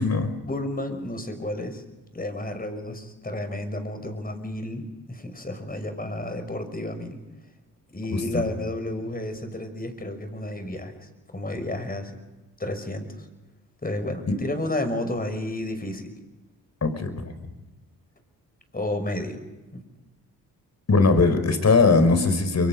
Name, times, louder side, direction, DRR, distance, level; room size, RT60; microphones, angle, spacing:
voice 1, 0.4-1.8 2.1-7.2 7.9-12.2 12.6-13.3 13.8-16.1 18.7-19.4 19.7-19.8, left 1 dB, 25° left, 8 dB, 5.9 m, -31 dB
voice 2, 8.1-8.4 14.2-14.4 16.8-17.3 20.9-22.7, left 3 dB, 45° left, 9 dB, 5.2 m, -20 dB
29.5 x 23.5 x 5.4 m, 1.1 s
supercardioid pair, 60°, 38 cm